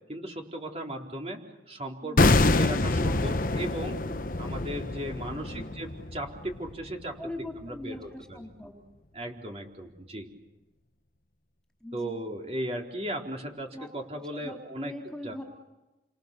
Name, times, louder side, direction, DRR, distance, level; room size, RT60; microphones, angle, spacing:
voice 1, 0.1-2.2 2.5-4.0 4.4-7.2 7.6-8.4 9.1-10.3 11.9-14.9 15.2-15.4, right 1 dB, 35° right, 1 dB, 4.1 m, -36 dB
voice 2, 2.0-2.4 5.3-5.7 7.2-8.7 11.8-12.2 13.7-13.9 14.3-15.4, left 1 dB, 5° left, 1 dB, 4.0 m, -41 dB
sound 1, 2.2-7.2 7.4-7.6, left 2 dB, 50° left, 1.0 m, -26 dB
29.5 x 26.5 x 6.9 m, 1.0 s
head